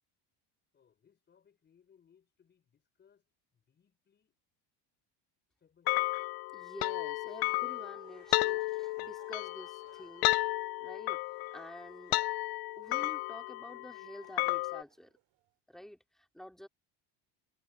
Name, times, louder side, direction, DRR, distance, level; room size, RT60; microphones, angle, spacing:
voice 1, 0.7-3.3 3.5-4.4 5.6-6.1 9.8-10.3, left 7 dB, 25° left, 4.6 m, -68 dB
sound 1, 5.9-14.8, left 23 dB, 60° left, 0.5 m, -33 dB
voice 2, 6.5-10.3 10.8-11.2 11.5-12.3 12.8-15.1 15.7-16.7, equal, ahead, 3.2 m, -49 dB
Laughter, 7.1-15.6, right 17 dB, 55° right, 2.9 m, -65 dB
cardioid pair, 165°, 43 cm